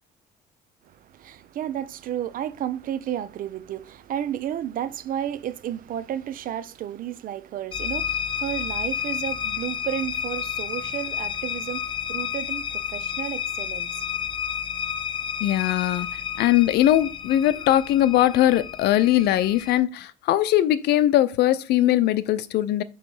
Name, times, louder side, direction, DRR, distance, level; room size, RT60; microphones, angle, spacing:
voice 1, 1.0-14.1, right 10 dB, 55° right, 0.6 m, -32 dB
sound 1, 7.7-19.8, left 8 dB, 30° left, 0.8 m, -31 dB
voice 2, 15.4-16.1 16.4-22.8, left 13 dB, 75° left, 0.6 m, -20 dB
6.8 x 3.1 x 5.5 m
cardioid pair, 110°, 17 cm